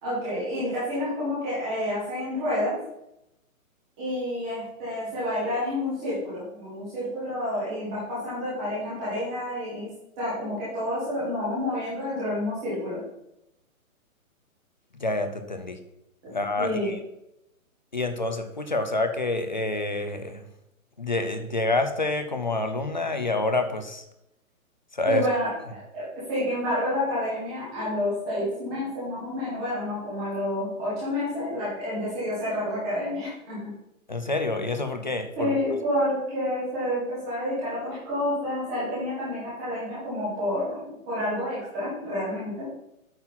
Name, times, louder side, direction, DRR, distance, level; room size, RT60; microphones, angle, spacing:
voice 1, 0.0-2.8 4.0-9.9 10.2-13.0 16.2-16.9 25.1-26.0 26.3-33.6 35.4-42.5, left 1 dB, 5° right, -9 dB, 0.8 m, -29 dB
voice 2, 15.0-15.8 16.3-16.9 17.9-20.5 21.0-24.0 24.9-25.2 34.1-35.6, left 2 dB, 35° left, 7 dB, 0.5 m, -27 dB
8.8 x 4.0 x 5.7 m, 0.83 s
hypercardioid pair, 180°, 42 cm